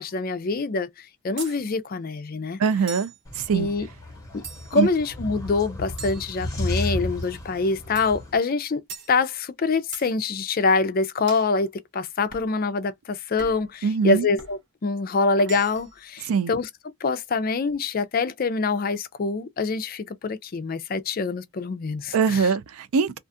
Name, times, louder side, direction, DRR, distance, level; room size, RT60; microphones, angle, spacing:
voice 1, 0.0-2.6 3.5-3.9 4.3-4.4 4.7-8.8 9.1-16.7 17.0-22.5, left 4 dB, 40° left, 0.4 m, -25 dB
sound 1, 1.4-1.6 2.9-3.2 4.4-4.9 6.0-6.9 8.0-8.2 8.9-9.1 9.9-10.1 11.3-11.5 12.3-12.5 13.4-13.7 14.4-14.6 15.4-16.0, right 6 dB, 50° right, 0.8 m, -41 dB
voice 2, 2.6-3.7 4.7-4.9 13.8-14.3 16.3-16.5 22.1-23.2, right 5 dB, 70° right, 0.4 m, -23 dB
sound 2, 3.2-8.4, left 1 dB, 15° left, 0.9 m, -33 dB
2.4 x 2.3 x 2.5 m
head